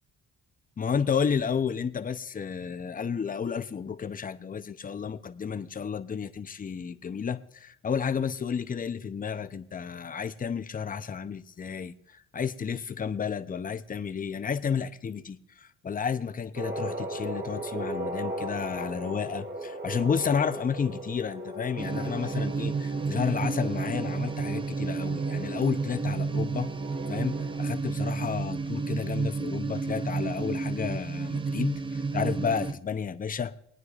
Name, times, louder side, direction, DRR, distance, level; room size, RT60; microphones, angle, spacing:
voice 1, 0.8-26.7 27.1-33.5, left 6 dB, 30° left, 0.6 m, -31 dB
sound 1, 16.6-27.7, right 1 dB, 35° right, 1.8 m, -38 dB
sound 2, 21.8-32.7, right 4 dB, 15° right, 0.5 m, -31 dB
23.0 x 9.5 x 2.4 m
cardioid pair, 90°, 30 cm